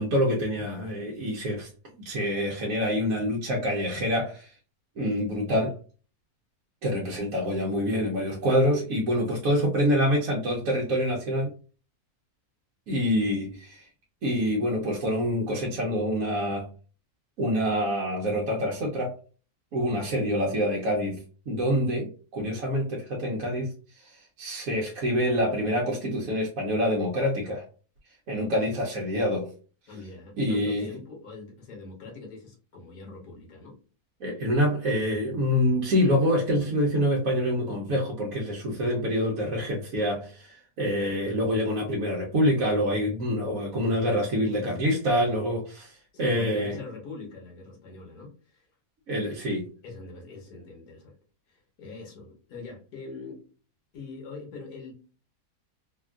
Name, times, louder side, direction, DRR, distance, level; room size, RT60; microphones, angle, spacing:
voice 1, 0.0-1.7 2.0-4.6 5.0-5.8 6.8-11.5 12.9-13.9 14.2-16.7 17.4-19.1 19.7-27.6 28.3-29.5 30.4-30.9 34.2-46.8 49.1-49.7, equal, 65° right, 1.1 m, -26 dB
voice 2, 28.4-28.7 29.9-33.8 44.4-44.9 46.1-48.7 49.8-51.1 51.5-53.5 53.9-54.9, left 3 dB, 75° left, 1.5 m, -43 dB
3.5 x 2.4 x 2.3 m
omnidirectional pair, 1.6 m